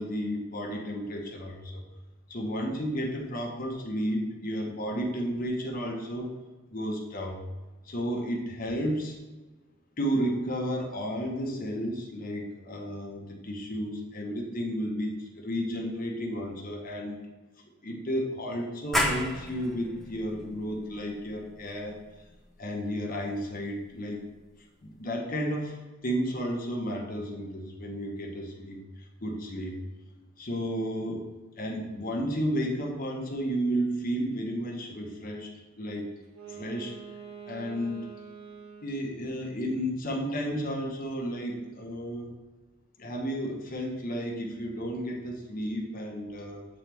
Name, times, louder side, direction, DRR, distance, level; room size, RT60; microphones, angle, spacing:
voice 1, 0.0-1.8 2.3-6.3 6.7-7.4 7.8-9.2 10.0-17.2 17.8-22.0 22.6-24.2 24.8-28.8 29.2-29.8 30.4-31.3 31.6-36.1 36.5-36.9 37.5-38.0 38.8-42.4 43.0-46.7, equal, 40° left, 0 dB, 1.0 m, -32 dB
sound 1, 18.9-24.3, left 1 dB, ahead, 0.5 m, -35 dB
Wind instrument woodwind instrument, 36.2-39.2, right 6 dB, 85° right, 1.2 m, -45 dB
7.5 x 4.0 x 3.3 m, 1.2 s
head